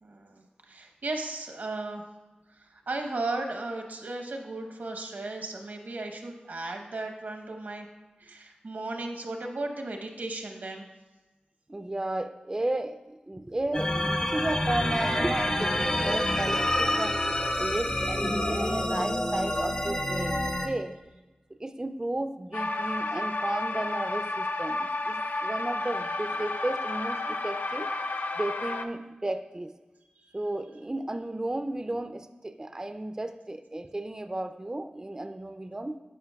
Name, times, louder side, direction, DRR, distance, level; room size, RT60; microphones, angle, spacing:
voice 1, 0.0-2.0 2.9-7.9 8.2-10.9, right 2 dB, 85° right, 3 dB, 0.9 m, -35 dB
voice 2, 11.7-17.2 17.6-20.9 21.5-27.9 28.4-29.7 30.3-36.0, right 1 dB, 25° right, 9 dB, 0.3 m, -33 dB
sound 1, 13.7-20.7, left 1 dB, 30° left, 0.7 m, -27 dB
sound 2, 22.5-28.8, left 2 dB, 75° left, 0.4 m, -31 dB
11.5 x 5.1 x 2.3 m, 1.1 s
wide cardioid pair, 55°, 3 cm